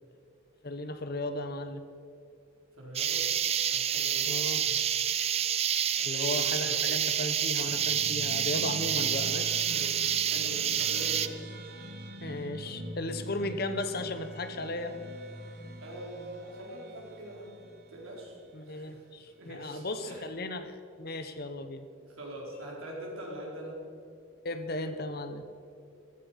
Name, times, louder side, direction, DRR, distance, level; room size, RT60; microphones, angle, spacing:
voice 1, 0.6-1.8 4.3-4.6 6.0-9.6 10.8-10.9 12.2-14.9 18.5-21.9 24.4-25.4, left 2 dB, 45° left, 9 dB, 0.9 m, -36 dB
voice 2, 2.7-3.3 3.7-4.3 4.6-4.9 5.9-6.8 9.0-9.2 9.6-11.9 12.6-12.7 15.8-17.6 17.9-19.0 19.4-20.3 22.1-23.8 24.7-24.9, right 1 dB, 80° right, -3 dB, 4.6 m, -44 dB
sound 1, 3.0-11.3, right 9 dB, 30° right, 0.4 m, -28 dB
sound 2, 7.7-18.4, equal, 45° right, 1.4 m, -44 dB
14.5 x 14.0 x 5.8 m, 2.5 s
head